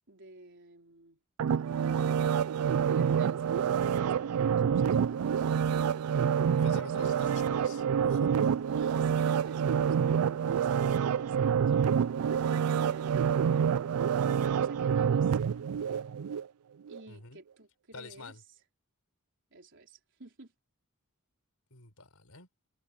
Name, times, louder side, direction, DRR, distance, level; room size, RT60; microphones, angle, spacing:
voice 1, 0.1-1.2 1.5-2.3 2.8-5.9 6.7-7.9 8.6-14.1 14.3-16.3 16.9-18.6 19.5-20.5, right 2 dB, 60° right, 4.4 m, -54 dB
sound 1, 1.4-16.4 16.9-17.0, right 7 dB, 90° right, 0.4 m, -27 dB
voice 2, 6.6-8.5 17.1-17.4 17.9-18.4 21.7-22.5, left 3 dB, 80° left, 4.8 m, -47 dB
head